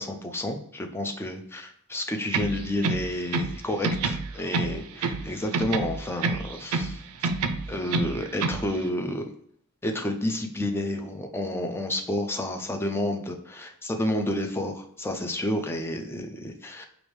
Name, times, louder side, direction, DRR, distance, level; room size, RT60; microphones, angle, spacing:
voice 1, 0.0-7.3 7.7-9.3 9.8-16.9, left 1 dB, 10° left, 4 dB, 0.4 m, -30 dB
sound 1, 2.3-3.6 3.8-5.3 5.5-7.0 7.2-8.7, right 4 dB, 70° right, 0.4 m, -28 dB
4.7 x 2.6 x 3.1 m, 0.70 s
head